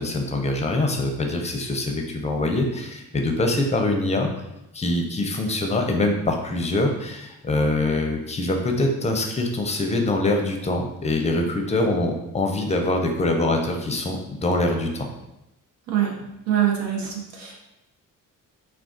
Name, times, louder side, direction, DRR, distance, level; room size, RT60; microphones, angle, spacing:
voice 1, 0.0-4.3 4.7-15.1, left 2 dB, 20° left, 3 dB, 0.5 m, -24 dB
voice 2, 16.5-17.6, right 10 dB, 85° right, 0 dB, 0.7 m, -24 dB
2.4 x 2.3 x 3.6 m, 0.89 s
cardioid pair, 80°, 34 cm